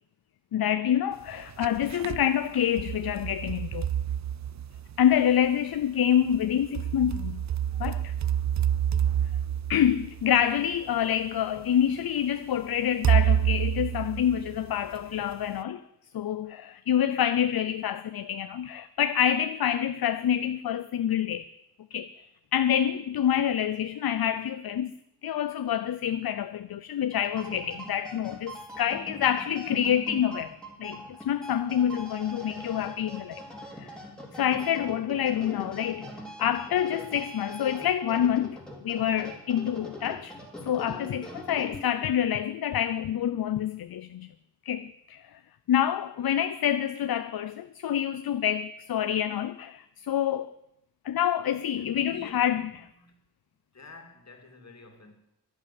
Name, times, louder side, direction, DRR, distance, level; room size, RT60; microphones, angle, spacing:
voice 1, 0.5-3.9 5.0-7.4 7.8-8.1 9.7-15.8 16.1-21.5 21.9-22.1 22.5-24.9 25.2-33.4 33.8-33.9 34.3-36.1 36.4-38.6 38.8-40.3 40.6-44.3 44.7-45.2 45.7-50.5 51.0-52.6, left 10 dB, 65° left, 0.6 m, -27 dB
sound 1, 1.3-2.3 2.8-5.2 6.3-10.8 11.6-11.7 13.0-14.9, right 9 dB, 45° right, 0.4 m, -28 dB
sound 2, 27.1-42.1, equal, ahead, 2.9 m, -42 dB
voice 2, 52.0-53.2 53.7-55.1, left 3 dB, 45° left, 2.5 m, -50 dB
11.5 x 11.0 x 8.3 m
wide cardioid pair, 150°, 39 cm